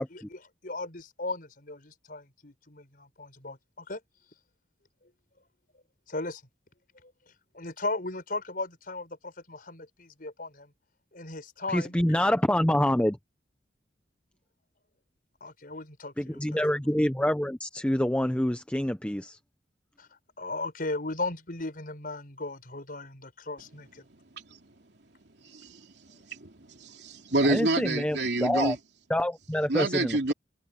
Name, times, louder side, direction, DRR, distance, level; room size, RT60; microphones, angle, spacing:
voice 1, 0.0-4.0 6.1-6.4 7.5-10.7 11.1-12.0 15.4-16.7 20.0-20.1 20.4-24.0, left 2 dB, 55° left, 5.8 m, -37 dB
voice 2, 11.7-13.2 16.2-19.4 27.5-28.2 28.4-28.8 29.1-30.3, left 1 dB, 5° left, 0.8 m, -26 dB
voice 3, 24.1-24.6 25.4-28.8 29.7-30.3, right 2 dB, 75° right, 3.0 m, -29 dB
head